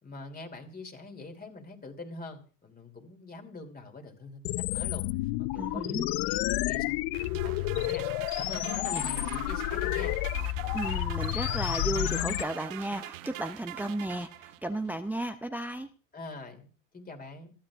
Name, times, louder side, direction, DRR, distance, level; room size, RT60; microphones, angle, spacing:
voice 1, 0.0-8.1 8.4-10.2 16.1-17.5, left 3 dB, 25° left, 5 dB, 3.0 m, -45 dB
sound 1, 4.4-12.4, left 18 dB, 60° left, 0.6 m, -30 dB
voice 2, 5.6-6.1 8.9-9.0 10.7-15.9, right 1 dB, 5° right, 9 dB, 0.7 m, -34 dB
sound 2, 7.1-14.9, right 17 dB, 75° right, 0.9 m, -43 dB
26.5 x 8.9 x 2.5 m, 0.38 s
hypercardioid pair, 80°, 39 cm